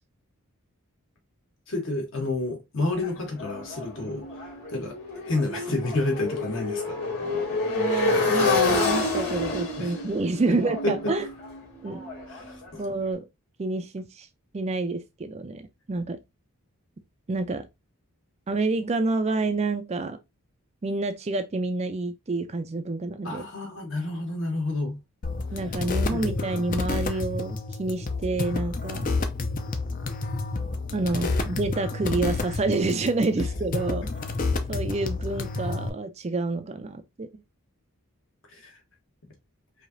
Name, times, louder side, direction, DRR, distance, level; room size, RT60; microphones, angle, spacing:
voice 1, 1.7-7.0 9.8-9.9 10.5-10.6 10.8-11.1 12.3-12.8 23.2-25.0 26.1-26.2 38.5-38.7, left 2 dB, 55° left, 1.3 m, -30 dB
Motorcycle, 3.0-12.9, left 3 dB, 90° left, 2.3 m, -28 dB
voice 2, 7.6-11.3 11.8-12.1 12.8-13.3 13.6-14.3 14.5-16.2 17.3-17.7 18.5-20.2 20.8-23.4 25.5-29.1 30.9-34.1 34.7-37.3, right 3 dB, 30° right, 0.4 m, -28 dB
sound 1, 25.2-35.9, left 3 dB, 40° left, 0.5 m, -29 dB
4.8 x 2.8 x 2.6 m
head